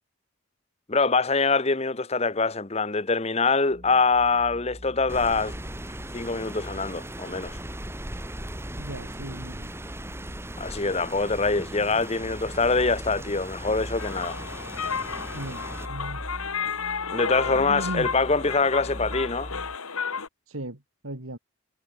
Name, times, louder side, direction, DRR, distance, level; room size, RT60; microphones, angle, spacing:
voice 1, 0.9-5.5 6.1-7.6 10.6-14.4 17.1-19.5, left 4 dB, 30° left, 1.0 m, -24 dB
sound 1, 3.7-19.8, equal, 35° right, 5.6 m, -43 dB
Rain, 5.1-15.9, right 1 dB, 10° right, 5.3 m, -39 dB
voice 2, 8.8-9.9 15.3-16.3 17.5-18.1 20.5-21.4, right 1 dB, 75° right, 2.8 m, -37 dB
sound 2, 14.0-20.3, left 6 dB, 85° left, 2.1 m, -32 dB
head